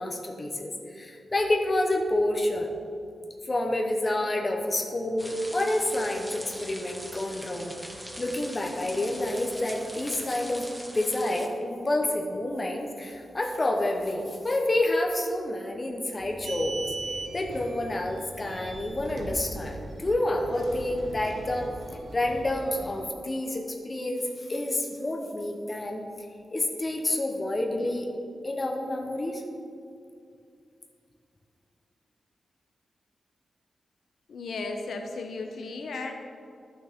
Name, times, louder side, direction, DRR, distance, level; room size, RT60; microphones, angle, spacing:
voice 1, 0.0-2.7 3.5-7.8 8.2-10.6 10.9-16.8 17.3-21.7 22.1-26.0 26.5-28.1 28.4-29.4, left 1 dB, 25° left, 1 dB, 0.9 m, -28 dB
sound 1, 5.2-11.5, equal, ahead, 0.6 m, -42 dB
sound 2, 16.2-23.1, right 2 dB, 60° right, 1.1 m, -39 dB
voice 2, 34.3-36.1, left 3 dB, 75° left, 4 dB, 0.7 m, -35 dB
11.5 x 6.2 x 3.6 m, 2.4 s
wide cardioid pair, 135°, 0 cm